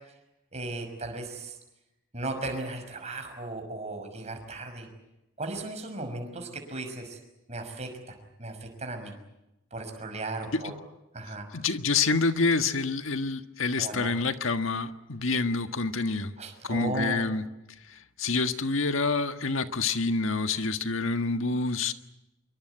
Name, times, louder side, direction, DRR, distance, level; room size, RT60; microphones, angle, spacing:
voice 1, 0.5-1.6 2.1-4.9 5.4-7.2 7.5-9.2 9.7-10.7 11.1-11.5 13.8-14.1 16.4-17.2, right 2 dB, 35° right, 5 dB, 5.9 m, -36 dB
voice 2, 11.5-16.3 16.6-17.4 17.9-21.9, left 4 dB, 85° left, 8 dB, 1.6 m, -27 dB
26.0 x 23.5 x 8.0 m, 0.90 s
head